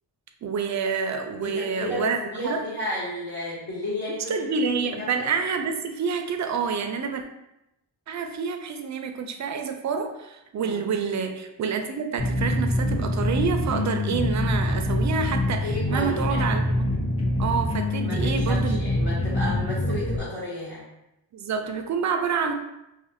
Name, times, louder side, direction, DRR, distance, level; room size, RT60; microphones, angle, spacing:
voice 1, 0.4-2.6 4.3-7.2 8.1-16.8 17.4-18.8 21.3-22.5, right 5 dB, 40° right, 6 dB, 0.4 m, -28 dB
voice 2, 1.3-4.5 4.9-5.3 10.6-10.8 15.6-16.6 18.0-20.9, left 1 dB, 55° left, -11 dB, 1.1 m, -32 dB
sound 1, 12.2-20.2, left 1 dB, 10° left, 0.5 m, -25 dB
2.5 x 2.4 x 2.6 m, 0.88 s
cardioid pair, 55°, 47 cm